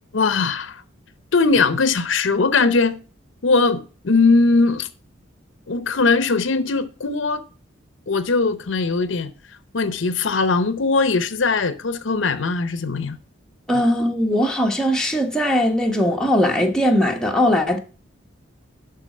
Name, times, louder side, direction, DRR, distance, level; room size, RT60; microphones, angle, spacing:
voice 1, 0.1-0.8 1.3-3.0 3.4-4.9 5.7-7.4 8.1-9.3 9.7-13.2 13.7-13.8, left 4 dB, 75° left, 0.7 m, -20 dB
voice 2, 13.7-17.8, equal, 5° left, 1.0 m, -19 dB
11.5 x 4.0 x 6.5 m
head